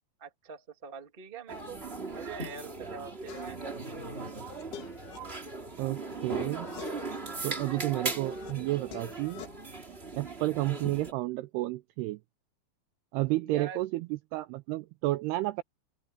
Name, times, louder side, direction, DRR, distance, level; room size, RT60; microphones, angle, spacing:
voice 1, 0.2-4.3 13.4-13.8, right 5 dB, 45° right, 0.6 m, -45 dB
sound 1, 1.5-11.1, right 3 dB, 20° right, 2.1 m, -38 dB
sound 2, 3.3-3.8 4.2-6.1 6.4-7.2 7.7-9.5, left 7 dB, 90° left, 5.4 m, -48 dB
voice 2, 5.8-6.7 7.4-9.4 10.2-12.2 13.1-15.6, right 18 dB, 85° right, 2.3 m, -31 dB
omnidirectional pair, 5.2 m